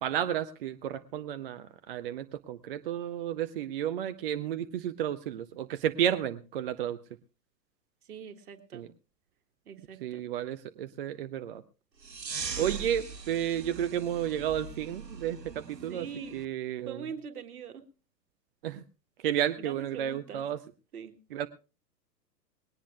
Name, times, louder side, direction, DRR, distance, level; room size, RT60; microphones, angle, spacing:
voice 1, 0.0-7.0 8.7-8.9 10.0-11.6 12.6-16.1 16.3-17.0 18.6-18.8 19.2-20.6 21.3-21.5, right 10 dB, 35° right, 11 dB, 0.6 m, -32 dB
voice 2, 8.0-8.8 9.6-10.2 12.6-12.9 15.9-16.4 16.9-17.8 19.6-20.4 20.9-21.1, right 7 dB, 60° right, 7 dB, 1.8 m, -43 dB
sound 1, 12.0-16.4, right 5 dB, 80° right, 1.2 m, -41 dB
20.0 x 18.5 x 2.2 m, 0.33 s
figure-of-eight pair, 110°, 49 cm